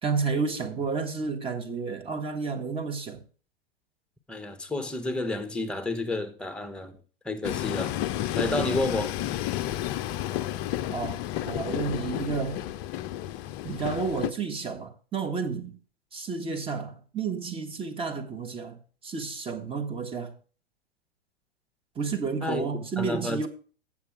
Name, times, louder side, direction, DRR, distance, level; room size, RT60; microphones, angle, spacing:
voice 1, 0.0-3.2 10.9-12.7 13.6-15.8 16.1-20.3 21.9-23.5, right 5 dB, 20° right, 1.2 m, -31 dB
voice 2, 4.3-7.0 7.2-7.9 8.3-9.2 22.4-22.6 23.0-23.5, left 2 dB, 5° left, 0.9 m, -30 dB
Train, 7.4-14.3, left 13 dB, 30° left, 0.5 m, -31 dB
8.1 x 7.3 x 4.7 m
figure-of-eight pair, 95°, 30 cm